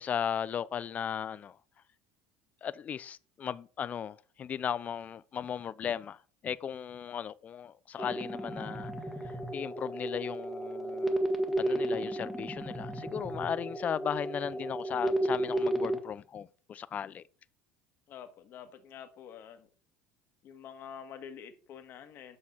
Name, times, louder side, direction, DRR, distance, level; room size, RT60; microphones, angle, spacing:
voice 1, 0.0-1.6 2.6-8.9 9.2-11.2 11.6-17.2, left 8 dB, 30° left, 0.5 m, -36 dB
sound 1, 8.0-16.0, right 1 dB, 5° right, 1.4 m, -33 dB
voice 2, 18.1-19.7 20.4-22.4, left 8 dB, 45° left, 1.6 m, -47 dB
8.7 x 6.3 x 5.6 m
cardioid pair, 145°, 5 cm